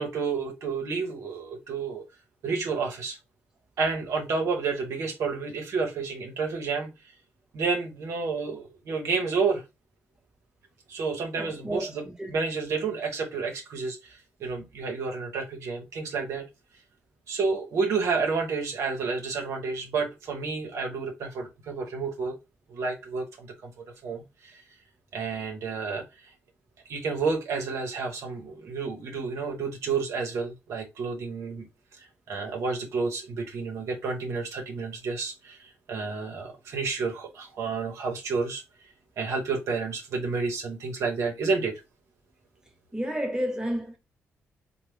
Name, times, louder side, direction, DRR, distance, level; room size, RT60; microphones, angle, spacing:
voice 1, 0.0-2.0 2.4-3.2 3.8-6.9 7.5-9.6 10.9-16.5 17.3-22.4 22.7-24.6 25.1-26.3 26.9-31.7 31.9-38.6 39.2-41.7, right 4 dB, 75° right, 0.7 m, -30 dB
voice 2, 11.4-12.4 42.9-44.0, equal, 15° right, 1.0 m, -31 dB
3.0 x 2.0 x 3.2 m
supercardioid pair, 55°, 5 cm